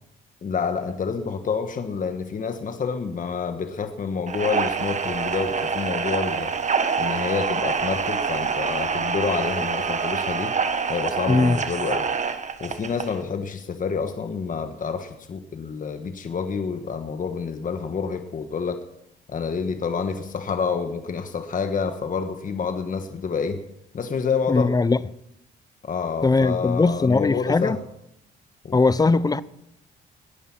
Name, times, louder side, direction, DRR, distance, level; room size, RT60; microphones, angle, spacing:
voice 1, 0.4-6.5 7.0-10.5 10.9-12.1 12.6-18.8 19.3-23.6 23.9-24.8 25.8-27.8 28.6-28.8, left 5 dB, 40° left, 1.4 m, -28 dB
sound 1, 4.3-13.2, right 5 dB, 35° right, 1.3 m, -26 dB
sound 2, 4.8-6.0 6.3-7.5 7.7-8.9 9.2-10.4, right 1 dB, 15° right, 4.8 m, -49 dB
voice 2, 11.3-11.6 24.5-25.0 26.2-27.8 28.7-29.4, left 3 dB, 20° left, 0.7 m, -20 dB
19.0 x 11.0 x 5.9 m
cardioid pair, 90°, 20 cm